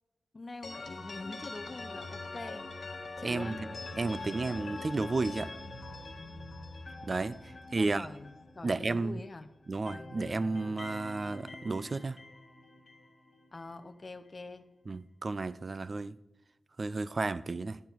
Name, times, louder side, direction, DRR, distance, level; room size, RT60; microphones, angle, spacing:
voice 1, 0.3-2.7 3.2-3.6 7.8-9.5 13.5-14.6, left 2 dB, 30° left, 0.7 m, -44 dB
sound 1, 0.6-9.4 9.6-13.8, left 3 dB, 55° left, 1.5 m, -44 dB
voice 2, 3.2-3.7 3.9-5.6 7.0-7.4 7.7-8.1 8.6-9.2 9.7-12.2 14.9-16.2 16.8-17.8, right 3 dB, 40° right, 0.3 m, -32 dB
11.0 x 10.0 x 4.5 m
wide cardioid pair, 155°, 0 cm